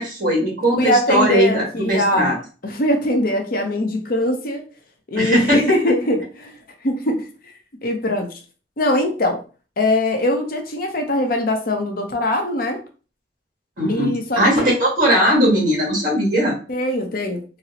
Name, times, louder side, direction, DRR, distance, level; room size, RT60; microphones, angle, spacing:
voice 1, 0.0-2.3 5.1-5.6 13.8-16.5, equal, 50° right, 1.6 m, -19 dB
voice 2, 0.8-2.4 2.6-4.6 5.1-7.3 7.8-8.4 8.8-9.4 9.8-12.8 13.9-14.7 16.7-17.4, left 1 dB, 55° left, 0.6 m, -21 dB
4.0 x 2.0 x 2.8 m
head